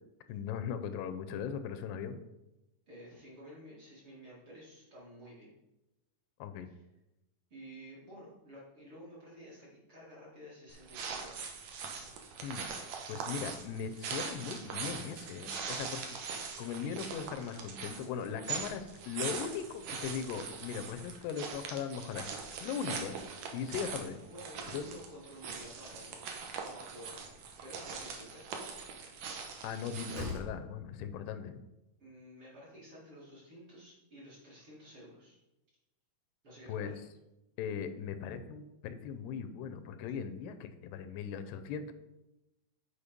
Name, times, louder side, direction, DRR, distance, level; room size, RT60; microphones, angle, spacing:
voice 1, 0.3-2.2 6.4-6.7 12.4-12.7 13.1-22.3 22.6-23.2 23.5-24.2 24.7-24.9 29.6-31.6 36.7-36.9 37.6-41.9, left 7 dB, 85° left, 10 dB, 2.7 m, -39 dB
voice 2, 2.9-5.5 6.7-6.8 7.5-11.8 24.3-28.6 32.0-35.4 36.4-36.9, equal, 40° right, -7 dB, 2.3 m, -52 dB
sound 1, 10.7-30.4, right 5 dB, 80° right, 1.6 m, -42 dB
Slam, 27.7-28.1 29.6-29.7 30.1-30.7, left 1 dB, 65° right, 3.3 m, -41 dB
8.5 x 4.3 x 5.2 m, 0.96 s
omnidirectional pair, 4.6 m